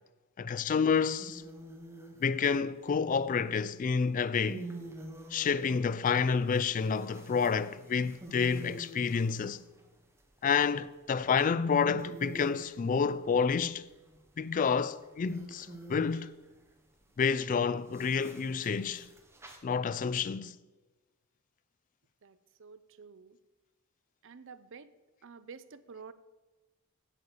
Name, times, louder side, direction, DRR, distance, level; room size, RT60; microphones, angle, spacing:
voice 1, 0.4-1.4 2.2-4.6 5.3-9.6 10.4-13.8 14.4-16.3 17.2-19.1 19.6-20.6, left 6 dB, 35° left, 0.3 m, -29 dB
sound 1, 1.2-2.6 3.9-9.8 10.4-11.1 11.5-11.6 11.8-12.8 14.1-16.4 17.9-19.6, right 1 dB, 10° right, 1.2 m, -47 dB
voice 2, 22.2-23.4 24.2-24.9 25.2-26.1, right 5 dB, 60° right, 0.5 m, -50 dB
8.6 x 8.3 x 6.7 m
head